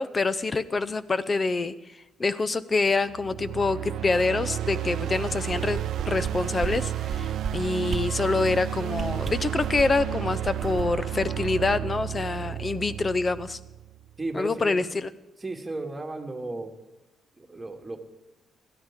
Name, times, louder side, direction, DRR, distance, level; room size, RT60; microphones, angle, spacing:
voice 1, 0.0-1.7 2.2-5.8 6.1-13.6 14.3-15.1, left 3 dB, 30° left, 15 dB, 0.7 m, -26 dB
sound 1, 3.1-14.1, right 12 dB, 70° right, 0.5 m, -32 dB
sound 2, 5.5-6.3 6.6-6.7 7.0-7.5 7.9-8.0 8.4-8.6 8.9-10.0 10.4-12.0 12.4-12.5, right 5 dB, 35° right, 1.1 m, -33 dB
voice 2, 14.2-14.8 15.4-16.7 17.4-18.0, right 2 dB, 15° right, 2 dB, 2.3 m, -34 dB
20.5 x 13.5 x 3.8 m, 1.0 s
cardioid pair, 90°, 0 cm